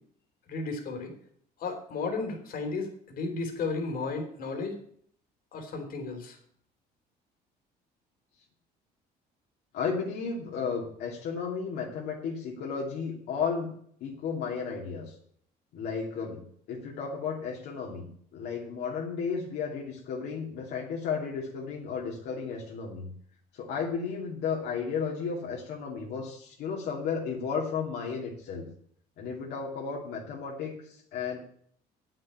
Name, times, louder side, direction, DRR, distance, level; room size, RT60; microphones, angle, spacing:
voice 1, 0.5-1.1 1.6-4.8 5.5-6.4, left 3 dB, 60° left, 4 dB, 3.2 m, -34 dB
voice 2, 9.7-13.7 14.0-15.1 15.7-16.4 16.7-18.1 18.3-23.1 23.5-28.7 29.2-31.4, left 5 dB, 80° left, -2 dB, 2.7 m, -33 dB
8.9 x 7.7 x 8.7 m, 0.62 s
cardioid pair, 110°, 17 cm